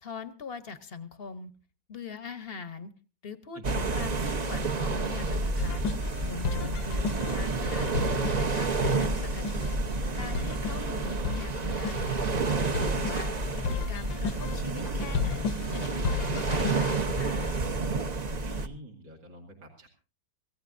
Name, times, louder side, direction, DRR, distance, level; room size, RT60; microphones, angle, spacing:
voice 1, 0.0-1.5 1.9-2.9 3.2-5.8 6.2-7.9 8.3-9.7 10.1-12.3 12.8-17.6, left 4 dB, 45° left, 12 dB, 0.8 m, -42 dB
sound 1, 3.6-18.7, right 3 dB, 35° right, 0.6 m, -30 dB
sound 2, 5.6-17.1, left 6 dB, 80° left, 1.6 m, -35 dB
voice 2, 18.4-19.9, right 1 dB, 80° right, -2 dB, 3.1 m, -48 dB
26.5 x 15.5 x 2.6 m, 0.34 s
omnidirectional pair, 2.0 m